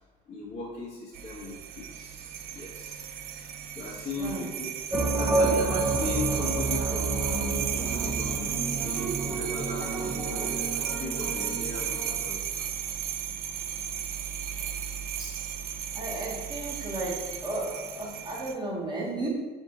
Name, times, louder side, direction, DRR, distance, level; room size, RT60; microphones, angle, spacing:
voice 1, 0.3-3.0 3.3-3.5 3.7-4.7 5.1-10.7 11.0-12.7, left 3 dB, 40° left, -8 dB, 1.2 m, -38 dB
sound 1, 1.1-18.5, right 9 dB, 65° right, 0.4 m, -34 dB
sound 2, 4.9-12.3, right 3 dB, 10° right, 0.9 m, -30 dB
voice 2, 15.9-19.3, right 1 dB, 25° right, -4 dB, 1.5 m, -34 dB
4.4 x 2.8 x 4.0 m, 1.3 s
cardioid pair, 110°, 17 cm